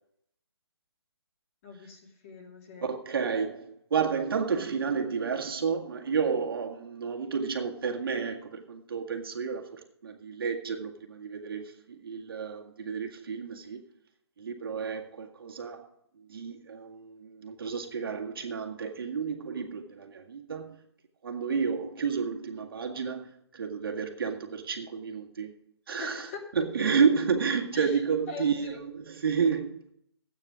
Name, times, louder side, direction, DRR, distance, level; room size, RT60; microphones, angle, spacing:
voice 1, 1.6-2.9 26.0-26.4 27.7-28.0 28.3-28.8, left 4 dB, 30° left, 2.6 m, -42 dB
voice 2, 2.8-13.8 14.4-15.8 16.3-20.8 21.2-23.3 23.5-25.5 25.9-29.8, right 6 dB, 60° right, 1.8 m, -31 dB
13.0 x 8.9 x 5.0 m
hypercardioid pair, 160°, 14 cm